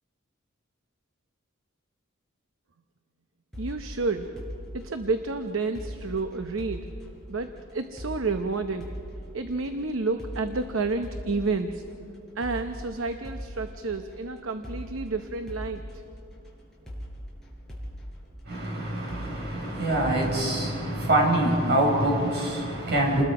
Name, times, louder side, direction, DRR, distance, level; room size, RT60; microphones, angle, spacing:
sound 1, 3.5-21.3, equal, ahead, 5.1 m, -41 dB
voice 1, 3.6-4.3 4.7-6.9 7.3-8.9 9.3-11.8 12.4-15.8, right 3 dB, 75° right, 7 dB, 0.8 m, -30 dB
voice 2, 18.4-23.2, right 1 dB, 55° right, -2 dB, 5.7 m, -25 dB
29.0 x 20.5 x 4.9 m, 2.7 s
head